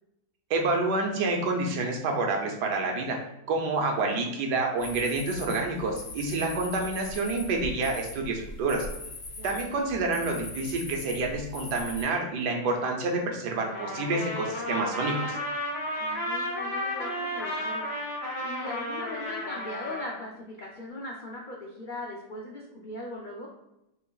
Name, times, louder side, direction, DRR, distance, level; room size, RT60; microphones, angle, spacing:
voice 1, 0.5-3.2 3.5-8.8 9.4-15.4, right 3 dB, 75° right, 1 dB, 1.4 m, -28 dB
sound 1, 4.8-12.0, left 2 dB, 70° left, 2.3 m, -41 dB
voice 2, 9.3-9.9 16.0-17.9 18.2-23.5, left 1 dB, 90° left, -2 dB, 0.4 m, -39 dB
Trumpet, 13.6-20.2, left 1 dB, 45° left, 1.3 m, -33 dB
5.8 x 3.6 x 2.3 m, 0.87 s
omnidirectional pair, 1.8 m